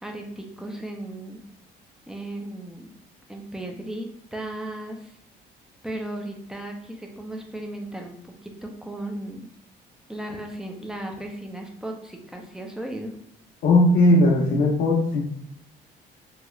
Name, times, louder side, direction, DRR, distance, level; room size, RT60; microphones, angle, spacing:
voice 1, 0.0-1.4 2.1-2.9 3.3-5.1 5.8-9.5 10.1-13.1, right 1 dB, 5° right, 2 dB, 0.5 m, -36 dB
voice 2, 13.6-15.2, left 1 dB, 70° left, -4 dB, 0.7 m, -18 dB
3.1 x 2.9 x 2.3 m, 0.73 s
cardioid pair, 110°, 17 cm